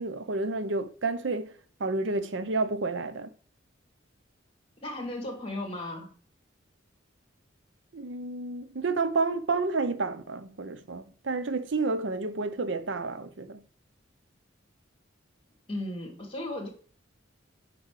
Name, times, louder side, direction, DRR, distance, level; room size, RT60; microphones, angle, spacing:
voice 1, 0.0-1.5 1.8-3.3 7.9-13.6, right 3 dB, 70° right, 0.7 m, -30 dB
voice 2, 4.8-6.1 15.7-16.7, left 1 dB, 30° left, 2.5 m, -35 dB
7.4 x 6.1 x 3.2 m
head